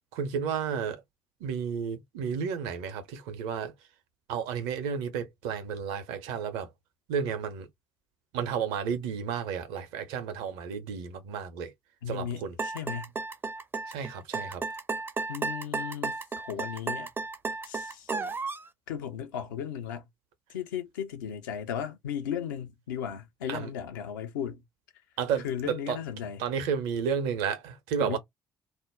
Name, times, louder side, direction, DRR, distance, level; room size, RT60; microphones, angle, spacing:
voice 1, 0.1-1.0 1.4-3.7 4.3-6.7 7.1-7.7 8.3-11.7 12.1-12.5 13.9-14.6 23.5-23.7 25.2-26.0 26.4-28.2, right 7 dB, 70° right, 0.7 m, -32 dB
voice 2, 12.0-13.2 15.3-17.1 17.6-18.1 18.9-20.1 20.5-24.6 25.4-26.4 28.0-28.2, left 8 dB, 75° left, 0.6 m, -36 dB
sound 1, 12.6-18.7, right 4 dB, 20° right, 0.5 m, -33 dB
2.5 x 2.0 x 3.5 m
figure-of-eight pair, 45°, 10 cm